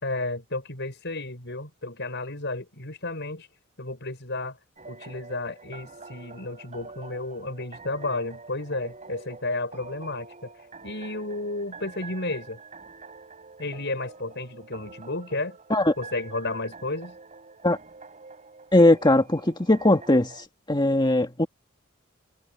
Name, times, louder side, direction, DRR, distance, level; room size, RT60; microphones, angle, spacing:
voice 1, 0.0-3.5 3.8-4.6 4.9-10.5 10.8-12.6 13.6-15.6 16.0-17.2, left 2 dB, 60° left, 6.5 m, -32 dB
sound 1, 4.8-20.5, right 4 dB, 35° right, 6.7 m, -46 dB
voice 2, 18.7-20.4 20.7-21.5, left 1 dB, 20° left, 2.0 m, -19 dB
head